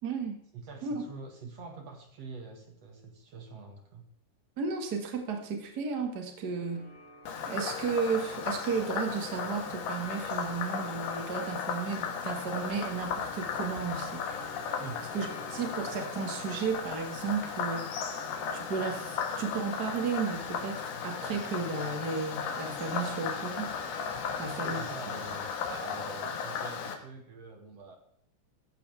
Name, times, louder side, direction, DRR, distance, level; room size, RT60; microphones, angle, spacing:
voice 1, 0.0-0.4 0.8-1.0 4.6-6.9 7.5-14.2 15.1-17.9 18.5-23.7 24.4-24.8 25.7-25.8, right 5 dB, 75° right, 3 dB, 0.9 m, -34 dB
voice 2, 0.5-4.0 14.8-15.1 24.6-25.5 25.8-27.9, right 4 dB, 55° right, 3 dB, 1.9 m, -45 dB
sound 1, 6.6-25.5, equal, 20° right, 2.9 m, -54 dB
Frog, 7.3-26.9, left 6 dB, 65° left, 3.1 m, -36 dB
15.0 x 15.0 x 3.5 m, 0.67 s
omnidirectional pair, 5.4 m